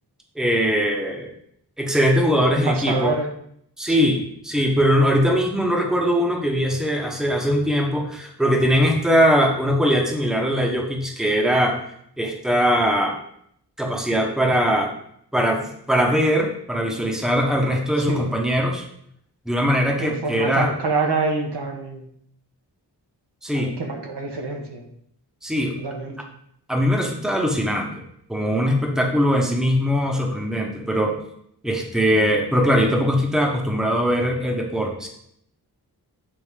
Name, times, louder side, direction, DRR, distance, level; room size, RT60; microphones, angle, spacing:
voice 1, 0.3-1.3 1.8-3.1 3.8-11.8 12.2-13.2 13.8-14.9 15.3-18.9 19.5-20.7 23.4-23.7 25.4-25.8 26.7-28.0 28.3-31.2 31.6-35.1, equal, ahead, 1 dB, 1.0 m, -21 dB
voice 2, 2.7-3.3 4.0-4.1 18.1-18.3 20.0-22.1 23.5-24.8 25.8-26.2, right 3 dB, 80° right, 2 dB, 1.2 m, -26 dB
8.3 x 4.0 x 3.6 m, 0.70 s
wide cardioid pair, 115°, 40 cm